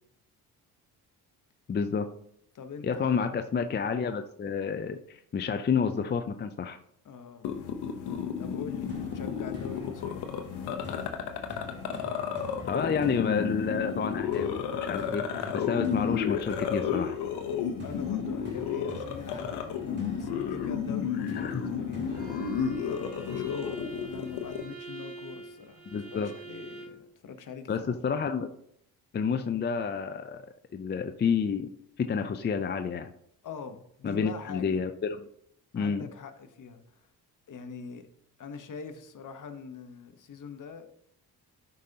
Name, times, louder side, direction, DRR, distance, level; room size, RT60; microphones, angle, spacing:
voice 1, 1.7-2.1 2.8-6.8 12.7-15.3 15.5-17.2 21.4-21.7 25.9-26.3 27.7-28.5 29.1-30.4 30.7-31.7 32.0-33.1 34.0-35.3 35.7-36.1, left 6 dB, 30° left, 0.5 m, -29 dB
voice 2, 2.5-3.2 7.0-7.6 8.4-10.2 17.8-22.5 22.9-27.7 33.4-34.8 35.7-37.1 37.5-38.1 38.4-40.9, left 5 dB, 55° left, 1.1 m, -43 dB
sound 1, 7.4-24.6, left 7 dB, 85° left, 0.8 m, -32 dB
sound 2, 8.9-23.8, left 1 dB, 25° right, 2.6 m, -47 dB
Bowed string instrument, 22.1-27.0, right 3 dB, 80° right, 3.2 m, -44 dB
11.5 x 5.2 x 2.8 m
cardioid pair, 85°, 38 cm